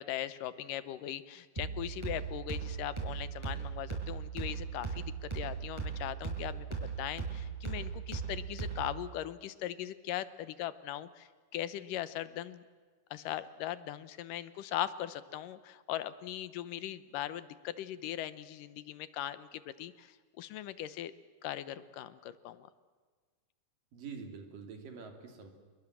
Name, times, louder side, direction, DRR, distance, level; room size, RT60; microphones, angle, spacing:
voice 1, 0.0-6.7 7.0-12.6 13.1-21.1 21.4-22.7, left 12 dB, 85° left, 15 dB, 2.6 m, -39 dB
sound 1, 1.6-9.1, right 5 dB, 10° right, 6.7 m, -38 dB
voice 2, 23.9-25.5, right 5 dB, 90° right, 5 dB, 4.6 m, -46 dB
28.0 x 22.0 x 7.5 m, 1.5 s
omnidirectional pair, 3.8 m